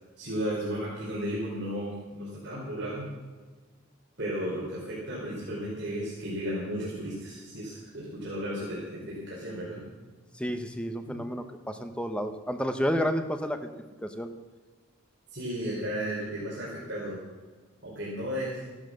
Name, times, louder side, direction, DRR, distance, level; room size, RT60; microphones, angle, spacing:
voice 1, 0.2-3.1 4.2-9.8 11.0-11.2 15.3-17.2 17.8-18.6, equal, 55° right, -7 dB, 4.6 m, -34 dB
voice 2, 10.4-13.7 14.0-14.3, equal, 5° left, 7 dB, 0.9 m, -30 dB
15.0 x 12.0 x 6.5 m, 1.3 s
head